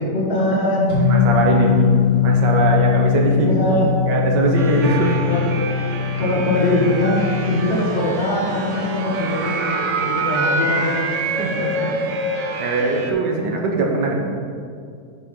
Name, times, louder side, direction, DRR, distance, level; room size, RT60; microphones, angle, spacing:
voice 1, 0.0-1.0 3.4-4.1 5.2-5.5 6.2-11.1, left 1 dB, 35° left, -5 dB, 1.9 m, -21 dB
sound 1, 0.9-7.7, left 8 dB, 40° right, 1.9 m, -20 dB
voice 2, 1.1-1.9 2.2-3.5 4.1-5.2 11.4-11.7 12.6-14.2, right 3 dB, 75° right, 0 dB, 1.6 m, -21 dB
sound 2, 4.5-13.1, right 2 dB, 60° right, 0.8 m, -26 dB
5.7 x 5.0 x 6.4 m, 2.3 s
omnidirectional pair, 1.9 m